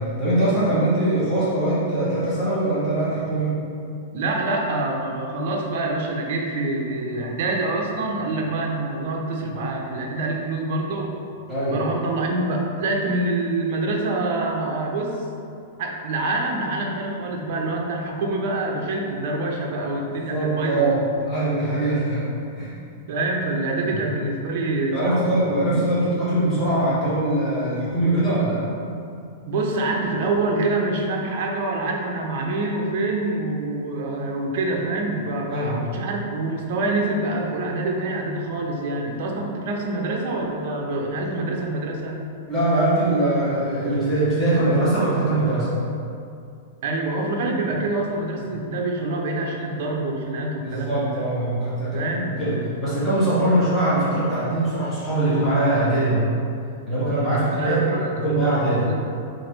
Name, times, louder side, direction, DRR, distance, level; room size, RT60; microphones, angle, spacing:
voice 1, 0.0-3.5 11.5-11.8 20.1-22.3 22.6-22.7 23.9-24.0 24.9-28.6 35.5-35.8 42.5-45.7 48.4-48.5 50.6-56.2 56.9-58.9, right 1 dB, 5° left, -13 dB, 0.9 m, -22 dB
voice 2, 4.1-11.1 11.7-15.2 15.8-20.9 23.1-25.4 25.7-25.8 29.5-42.2 46.8-51.2 51.9-52.4 57.5-58.4 58.8-59.0, right 2 dB, 50° right, 0 dB, 0.5 m, -26 dB
3.1 x 2.5 x 4.4 m, 2.5 s
supercardioid pair, 165°, 0 cm